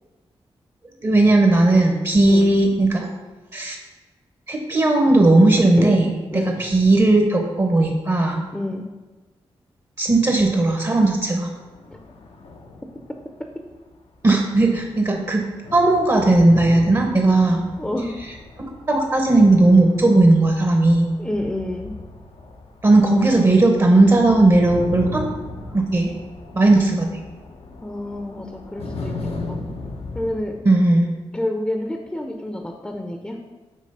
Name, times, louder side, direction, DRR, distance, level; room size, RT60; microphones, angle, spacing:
voice 1, 1.0-3.1 3.5-3.8 4.5-6.1 6.6-8.4 10.0-11.5 14.2-15.4 15.7-17.6 18.6-21.1 22.8-25.2 25.7-26.1 26.5-27.1 30.6-31.1, right 2 dB, 35° right, 2 dB, 0.9 m, -16 dB
voice 2, 8.5-8.8 17.8-18.2 21.2-21.9 23.0-24.1 26.7-27.0 27.8-29.1 29.5-29.6 30.1-30.7 31.3-33.4, left 1 dB, 10° left, 4 dB, 0.7 m, -28 dB
sound 1, 11.2-14.1 14.4-30.4, left 2 dB, 65° left, 0.8 m, -37 dB
7.5 x 3.0 x 5.5 m, 1.3 s
cardioid pair, 60°, 11 cm